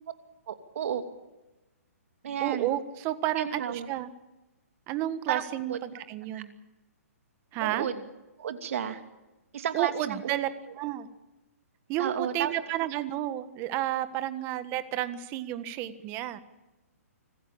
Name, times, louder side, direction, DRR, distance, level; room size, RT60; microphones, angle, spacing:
voice 1, 0.5-1.0 2.2-2.7 3.4-3.9 5.3-5.4 5.7-5.8 6.3-6.4 7.6-8.0 8.4-9.0 9.5-10.3 12.0-12.5, right 8 dB, 60° right, 7 dB, 2.8 m, -32 dB
voice 2, 2.4-4.1 4.9-6.5 7.5-7.9 9.7-10.5 10.8-11.1 11.9-16.4, right 13 dB, 30° right, 12 dB, 1.5 m, -31 dB
26.0 x 15.0 x 8.8 m, 1.0 s
hypercardioid pair, 145°, 8 cm